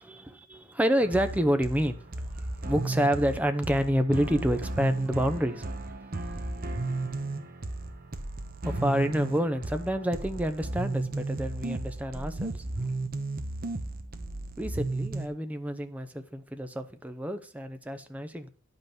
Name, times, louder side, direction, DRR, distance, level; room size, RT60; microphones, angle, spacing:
voice 1, 0.0-5.7 6.3-6.4 8.6-12.9 14.6-18.5, equal, 5° right, 8 dB, 0.7 m, -29 dB
sound 1, 1.0-15.3, right 2 dB, 40° right, 0.9 m, -34 dB
10.5 x 5.5 x 6.0 m, 0.39 s
head